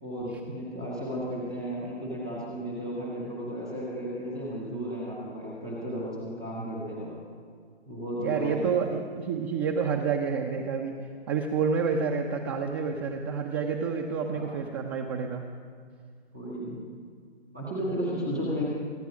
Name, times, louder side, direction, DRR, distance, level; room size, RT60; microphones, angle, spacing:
voice 1, 0.0-7.1 7.9-8.7 14.3-14.5 16.3-16.8 17.5-18.6, equal, 5° right, -6 dB, 0.3 m, -34 dB
voice 2, 8.2-11.0 11.3-15.5, right 6 dB, 20° right, 2 dB, 0.7 m, -29 dB
22.5 x 9.3 x 5.0 m, 2.1 s
figure-of-eight pair, 135°, 33 cm